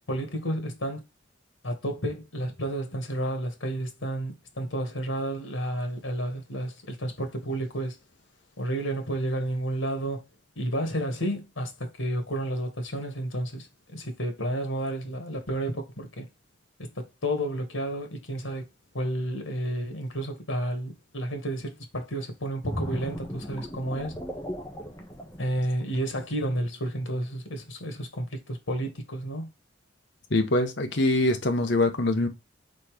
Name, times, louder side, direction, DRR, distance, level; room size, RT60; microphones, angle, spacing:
voice 1, 0.1-1.0 1.6-8.0 8.6-10.2 10.6-13.7 13.9-16.3 16.8-18.7 18.9-24.2 25.4-29.5, right 1 dB, 85° left, 1.9 m, -31 dB
sound 1, 22.6-26.2 26.7-26.9, equal, 15° left, 1.2 m, -36 dB
voice 2, 30.3-32.3, left 2 dB, 65° left, 1.1 m, -23 dB
4.3 x 4.3 x 5.0 m
head